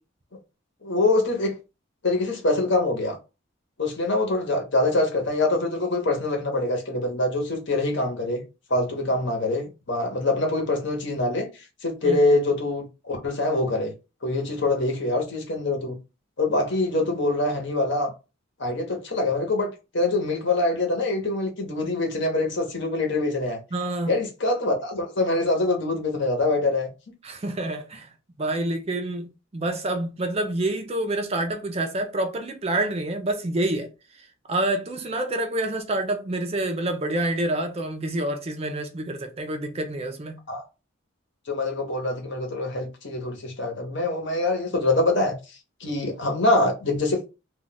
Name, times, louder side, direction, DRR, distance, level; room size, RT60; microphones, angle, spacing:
voice 1, 0.8-1.6 2.0-3.2 3.8-8.4 8.7-13.9 14.2-16.0 16.4-18.1 18.6-23.6 24.0-26.9 40.5-40.6 41.5-47.3, left 2 dB, 55° left, 0.9 m, -24 dB
voice 2, 23.7-24.1 27.2-33.9 34.1-40.4, right 1 dB, 30° right, 0.4 m, -28 dB
2.4 x 2.3 x 3.9 m
head